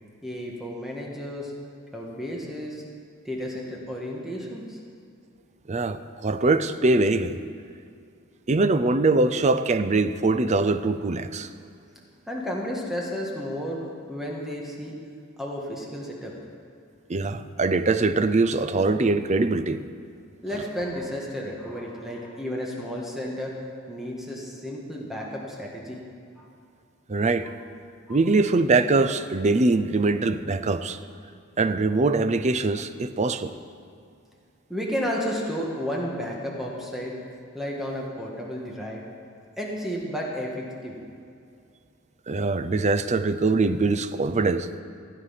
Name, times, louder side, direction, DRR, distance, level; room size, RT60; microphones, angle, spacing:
voice 1, 0.2-1.5 1.9-2.8 3.2-4.8 12.3-13.8 14.1-15.0 15.4-16.3 20.4-23.5 23.9-26.0 26.4-26.5 28.1-28.2 34.7-37.1 37.5-39.0 39.6-41.0, equal, ahead, -3 dB, 1.6 m, -32 dB
voice 2, 5.7-7.4 8.5-11.5 17.1-19.8 27.1-27.5 28.1-31.0 31.6-33.5 42.3-44.7, right 3 dB, 35° right, 10 dB, 0.5 m, -22 dB
16.0 x 9.4 x 5.8 m, 2.4 s
head